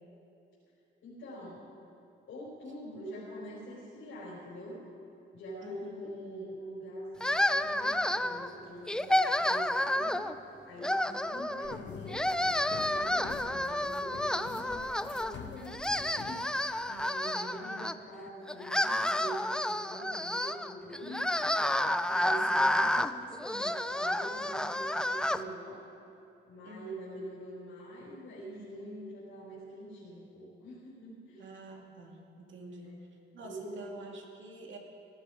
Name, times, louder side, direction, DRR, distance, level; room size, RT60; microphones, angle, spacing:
voice 1, 1.0-1.6 2.3-4.8 5.3-10.2 10.6-16.4 17.0-25.8 26.5-31.5 32.8-33.0 33.4-33.9, right 1 dB, 85° left, -8 dB, 4.7 m, -44 dB
voice 2, 5.6-6.1 16.8-17.6 19.5-19.6 26.6-27.0 31.4-32.9 33.3-34.8, right 2 dB, 70° right, 1 dB, 2.4 m, -48 dB
sound 1, 7.2-8.5 8.9-10.3 10.8-11.8 12.1-15.3 15.7-17.9 18.5-25.4, left 1 dB, 5° left, 0.4 m, -30 dB
sound 2, 11.6-17.1, left 8 dB, 65° left, 0.7 m, -47 dB
18.5 x 13.0 x 5.0 m, 2.7 s
cardioid pair, 125°, 20 cm